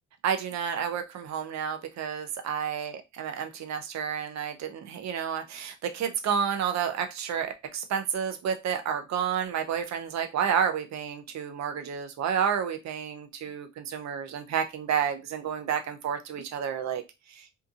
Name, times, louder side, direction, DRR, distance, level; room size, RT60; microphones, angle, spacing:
voice 1, 0.2-17.0 17.3-17.5, right 7 dB, 65° right, 7 dB, 0.7 m, -30 dB
2.7 x 2.5 x 2.4 m, 0.24 s
cardioid pair, 90°, 30 cm